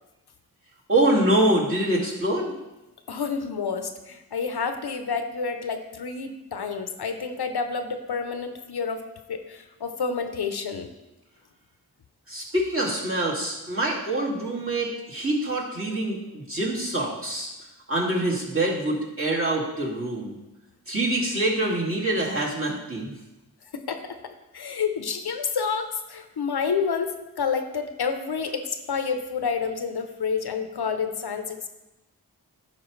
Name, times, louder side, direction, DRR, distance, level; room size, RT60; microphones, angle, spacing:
voice 1, 0.9-2.5 12.3-17.5 17.9-20.4 20.9-23.1, right 1 dB, 30° right, -4 dB, 2.1 m, -25 dB
voice 2, 3.1-10.9 23.7-24.2 24.5-31.7, left 5 dB, 70° left, 7 dB, 0.7 m, -29 dB
11.0 x 4.8 x 3.1 m, 1.0 s
cardioid pair, 45°, 40 cm